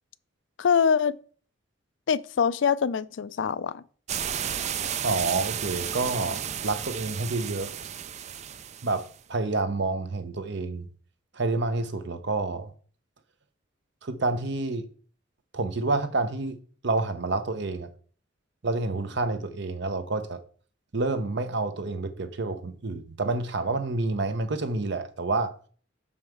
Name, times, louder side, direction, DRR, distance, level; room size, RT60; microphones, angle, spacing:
voice 1, 0.6-1.2 2.1-3.8, left 6 dB, 70° left, 0.4 m, -24 dB
sound 1, 4.1-9.2, right 9 dB, 35° right, 0.4 m, -33 dB
voice 2, 5.0-7.7 8.8-10.9 11.3-12.7 14.0-14.9 15.5-16.6 16.8-17.9 18.6-20.4 20.9-25.5, right 3 dB, 65° right, 0.9 m, -28 dB
6.5 x 5.6 x 4.6 m
head